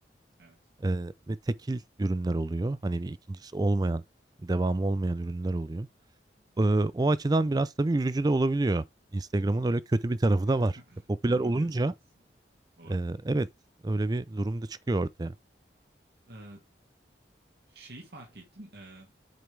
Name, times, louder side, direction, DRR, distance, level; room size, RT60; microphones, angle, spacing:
voice 1, 0.8-4.0 4.4-5.9 6.6-8.8 9.1-10.8 11.2-11.9 12.9-13.5 13.8-15.3, right 2 dB, 20° right, 0.4 m, -27 dB
voice 2, 10.5-11.9 12.2-12.3 12.7-13.0 16.2-16.7 17.7-19.1, right 1 dB, 60° right, 1.9 m, -50 dB
7.7 x 5.1 x 3.3 m
head